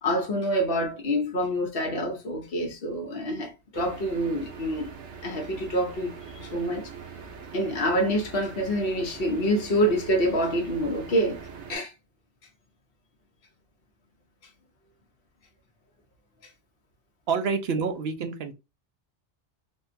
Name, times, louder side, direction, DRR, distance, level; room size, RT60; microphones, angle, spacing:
voice 1, 0.0-4.9 5.2-6.9 7.5-11.4 11.7-11.9, equal, 60° left, 1.1 m, -26 dB
sound 1, 3.7-11.8, right 5 dB, 90° right, 1.1 m, -43 dB
voice 2, 17.3-18.5, right 5 dB, 70° right, 0.9 m, -27 dB
3.7 x 2.2 x 2.6 m
omnidirectional pair, 1.1 m